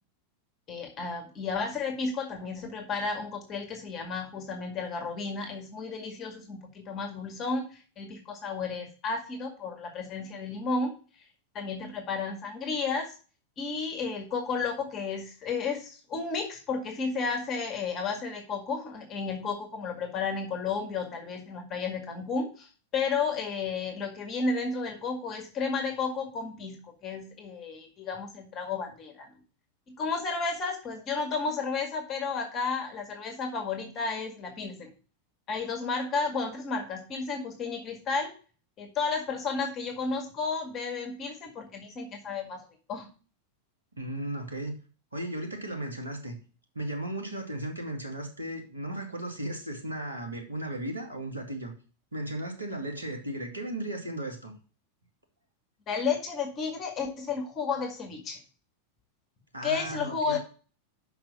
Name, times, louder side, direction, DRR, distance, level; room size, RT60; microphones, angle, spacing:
voice 1, 0.7-7.7 8.0-10.9 11.5-13.2 13.6-29.3 29.9-34.9 35.5-38.3 38.8-42.6 42.9-43.1 55.9-58.4 59.6-60.4, left 4 dB, 30° left, 4 dB, 2.0 m, -32 dB
voice 2, 44.0-44.8 45.1-46.4 46.7-51.7 52.1-54.5 59.5-60.4, right 1 dB, 80° right, 3 dB, 2.2 m, -35 dB
6.0 x 5.8 x 7.1 m, 0.37 s
figure-of-eight pair, 90°, 0 cm